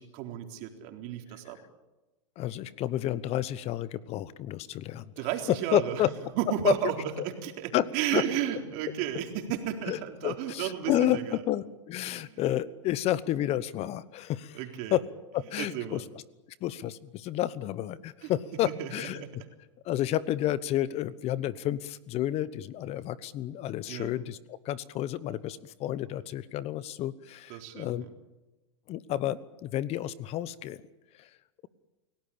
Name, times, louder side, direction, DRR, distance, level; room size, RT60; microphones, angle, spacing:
voice 1, 0.0-1.6 5.2-6.0 6.4-6.9 7.2-11.4 12.1-12.4 14.5-15.0 15.6-16.0 18.2-18.3 18.6-19.3 23.9-24.1 27.5-28.1, right 11 dB, 55° right, 4 dB, 3.9 m, -33 dB
voice 2, 2.4-5.0 5.7-6.1 6.6-6.7 7.7-7.9 8.1-8.2 9.9-11.2 11.5-14.6 14.9-15.1 15.3-16.0 16.6-19.2 19.8-28.0 28.9-30.8 31.2-31.3, left 13 dB, 40° left, 18 dB, 1.0 m, -30 dB
29.0 x 17.5 x 8.7 m, 1.1 s
hypercardioid pair, 110°, 16 cm